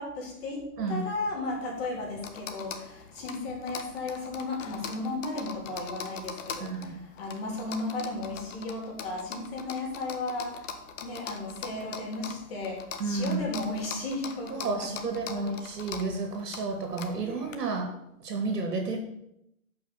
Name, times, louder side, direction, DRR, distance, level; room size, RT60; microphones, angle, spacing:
voice 1, 0.0-10.7 11.0-15.5, left 2 dB, 40° left, -1 dB, 3.2 m, -35 dB
sound 1, 1.5-17.6, left 6 dB, 55° left, 1.1 m, -43 dB
voice 2, 13.0-13.4 14.6-17.9 18.2-19.0, right 3 dB, 85° right, 3 dB, 2.4 m, -31 dB
7.0 x 5.7 x 6.8 m, 0.81 s
hypercardioid pair, 165°, 46 cm